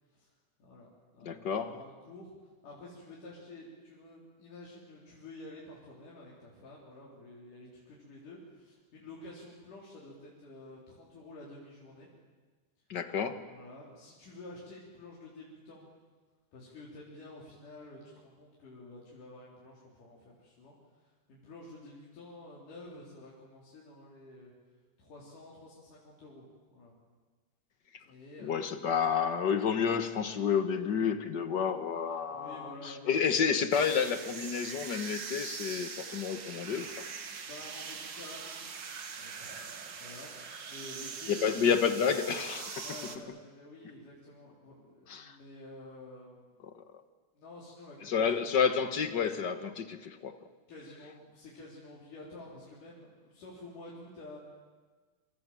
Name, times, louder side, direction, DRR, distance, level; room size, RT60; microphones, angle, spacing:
voice 1, 0.6-2.3 2.6-12.1 13.5-15.9 16.5-24.5 25.0-26.9 28.0-28.5 32.3-33.3 37.4-38.8 39.1-39.7 40.0-41.8 42.8-46.5 47.3-48.5 50.7-54.4, left 2 dB, 85° left, -5 dB, 5.5 m, -50 dB
voice 2, 1.2-1.8 12.9-13.4 28.4-36.9 41.3-42.8 45.1-45.4 48.0-50.3, left 7 dB, 55° left, 9 dB, 1.3 m, -30 dB
sound 1, 33.7-43.2, right 6 dB, 45° right, 1.8 m, -42 dB
27.0 x 26.5 x 7.6 m, 1.3 s
omnidirectional pair, 3.6 m